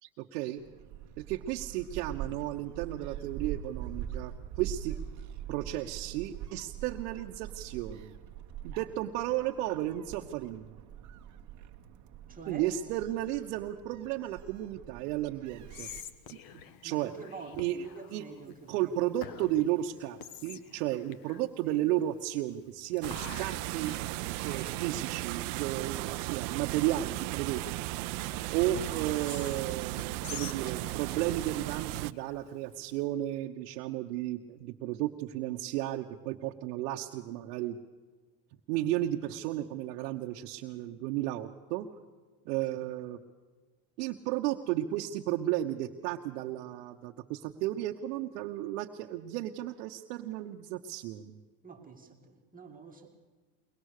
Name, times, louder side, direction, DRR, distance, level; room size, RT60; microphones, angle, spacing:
voice 1, 0.0-0.6 1.2-5.0 5.5-8.2 8.6-10.8 12.5-15.9 16.3-16.4 16.8-17.1 17.6-17.8 18.1-18.2 18.7-24.0 24.4-27.6 28.5-37.8 38.7-41.9 42.5-43.2 44.0-51.4, right 14 dB, 80° right, 1 dB, 1.1 m, -33 dB
Gull seagull, 0.6-16.0, right 10 dB, 40° right, 1.2 m, -43 dB
voice 2, 12.3-12.7 16.8-19.2 21.6-21.9 42.7-42.9 51.6-53.1, right 5 dB, 20° right, 2 dB, 2.3 m, -48 dB
Whispering, 15.5-33.0, left 8 dB, 50° left, 1.3 m, -50 dB
sound 1, 23.0-32.1, right 19 dB, 60° right, 0.7 m, -36 dB
22.5 x 19.5 x 6.6 m, 1.4 s
supercardioid pair, 125°, 46 cm